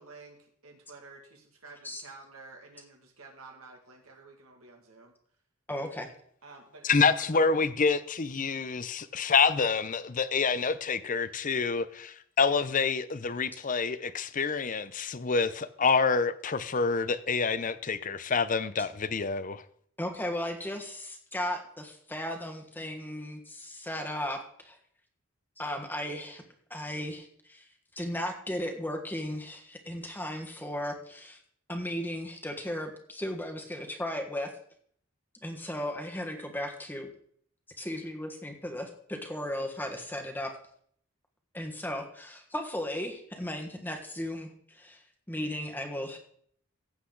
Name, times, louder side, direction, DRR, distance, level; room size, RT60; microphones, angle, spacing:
voice 1, 0.0-5.1 6.4-7.4, right 3 dB, 80° right, 2.2 m, -51 dB
voice 2, 5.7-6.1 20.0-24.8 25.6-26.4 26.7-27.7 27.9-31.4 31.7-34.5 35.4-37.1 37.8-40.6 41.5-46.2, left 1 dB, 10° left, 1.5 m, -36 dB
voice 3, 6.8-19.6, left 5 dB, 40° left, 0.6 m, -27 dB
16.0 x 8.2 x 3.9 m
head